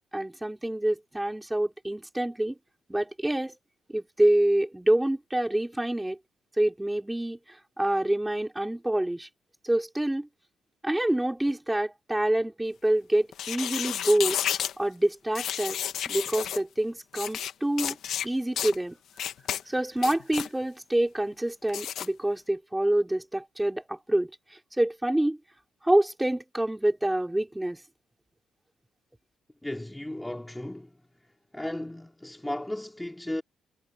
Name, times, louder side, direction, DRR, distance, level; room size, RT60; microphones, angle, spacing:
voice 1, 0.1-2.6 2.9-3.5 3.9-6.2 6.6-9.3 9.6-10.3 10.8-14.4 14.8-15.8 16.1-18.0 18.2-19.0 19.7-25.4 25.8-27.8, right 1 dB, 10° right, 4.9 m, -27 dB
sound 1, 13.3-14.7 15.3-16.6 17.1-17.5 17.8-18.3 18.6-18.7 19.2-19.6 20.0-20.5 21.7-22.1, left 10 dB, 70° left, 1.5 m, -31 dB
voice 2, 29.6-31.0 31.5-33.4, left 1 dB, 10° left, 3.5 m, -35 dB
cardioid pair, 90°, 0 cm